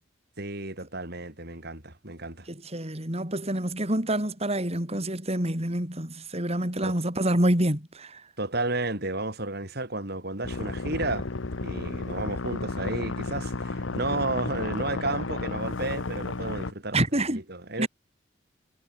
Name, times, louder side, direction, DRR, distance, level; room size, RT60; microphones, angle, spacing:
voice 1, 0.4-2.5 6.8-7.0 8.4-11.3 11.6-17.9, right 2 dB, 55° right, 6.3 m, -32 dB
voice 2, 2.5-8.2 16.9-17.4 17.8-17.9, right 1 dB, 35° right, 5.4 m, -27 dB
sound 1, 10.4-16.7, left 3 dB, 85° left, 1.1 m, -32 dB
head